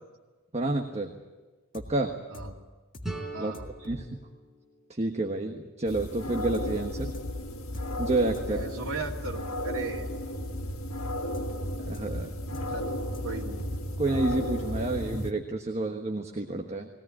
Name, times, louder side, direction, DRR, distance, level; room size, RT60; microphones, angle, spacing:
voice 1, 0.5-1.1 1.7-2.1 3.4-3.5 3.8-4.2 4.9-7.1 8.0-8.6 11.8-12.4 14.0-16.9, right 2 dB, 30° right, 3 dB, 1.3 m, -29 dB
sound 1, 1.7-1.9 2.3-2.5 2.9-3.1 3.5-4.0 6.5-6.7 7.1-7.3 7.7-7.9 8.2-8.7 11.3-11.7 11.9-12.0 12.2-12.9 13.1-13.8, left 1 dB, 45° left, 1.8 m, -43 dB
sound 2, 3.0-5.9, right 1 dB, ahead, 4.9 m, -42 dB
voice 2, 3.3-3.7 8.5-10.1 12.7-13.0 13.2-13.5, right 3 dB, 90° right, -2 dB, 2.5 m, -36 dB
sound 3, 5.9-15.3, left 1 dB, 90° left, 1.9 m, -34 dB
20.5 x 17.5 x 9.8 m, 1.3 s
head